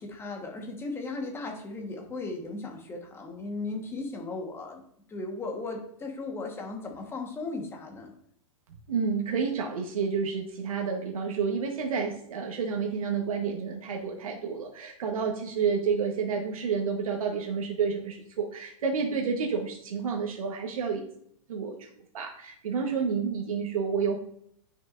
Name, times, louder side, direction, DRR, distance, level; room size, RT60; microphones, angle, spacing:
voice 1, 0.0-4.8 5.1-8.1, left 3 dB, 15° left, 2 dB, 1.4 m, -36 dB
voice 2, 8.9-21.0 21.5-21.9 22.1-24.2, right 5 dB, 85° right, 0 dB, 1.3 m, -30 dB
9.7 x 6.1 x 2.6 m, 0.69 s
hypercardioid pair, 145°, 18 cm